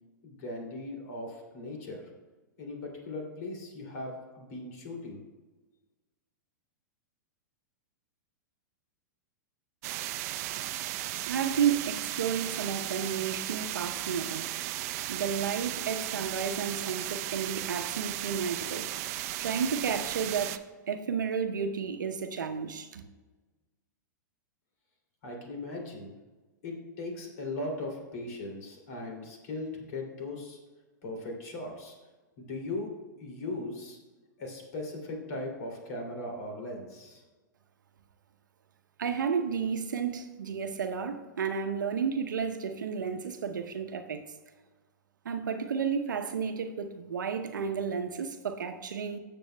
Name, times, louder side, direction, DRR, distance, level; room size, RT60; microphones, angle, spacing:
voice 1, 0.2-2.1 2.6-5.2 25.2-26.1 26.6-30.6 31.0-32.0 32.4-34.0 34.4-37.2, left 2 dB, 55° left, 0 dB, 2.7 m, -38 dB
sound 1, 9.8-20.6, right 14 dB, 50° right, 0.5 m, -35 dB
voice 2, 11.3-14.5 15.1-18.9 19.4-23.0 39.0-44.3 45.2-49.2, right 6 dB, 80° right, 7 dB, 0.8 m, -32 dB
17.0 x 7.0 x 2.2 m, 1.3 s
hypercardioid pair, 110°, 10 cm